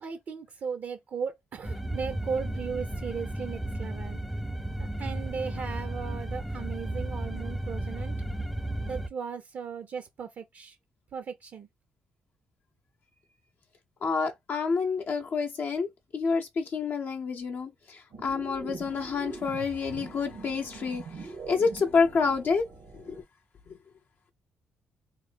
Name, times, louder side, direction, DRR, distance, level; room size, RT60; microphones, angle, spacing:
voice 1, 0.0-4.2 4.8-8.1 8.9-10.8 11.1-11.7, right 6 dB, 60° right, 0.5 m, -37 dB
sound 1, 1.6-9.1, right 1 dB, ahead, 0.5 m, -34 dB
voice 2, 14.0-22.7 22.9-23.2, left 5 dB, 55° left, 0.5 m, -28 dB
sound 2, 18.1-23.2, right 4 dB, 90° right, 1.2 m, -43 dB
3.1 x 2.1 x 3.2 m
cardioid pair, 70°, 4 cm